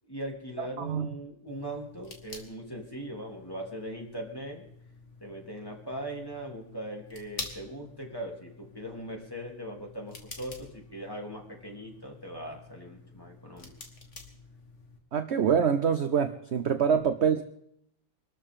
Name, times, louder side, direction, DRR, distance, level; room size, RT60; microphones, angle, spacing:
voice 1, 0.1-4.6 5.2-13.7 16.9-17.0, right 1 dB, 15° left, 0 dB, 3.1 m, -40 dB
voice 2, 0.8-1.1 15.1-17.4, right 7 dB, 50° right, 9 dB, 0.9 m, -25 dB
sound 1, 1.5-15.0, left 3 dB, 45° left, 2.2 m, -48 dB
24.5 x 13.0 x 3.7 m, 0.71 s
omnidirectional pair, 1.8 m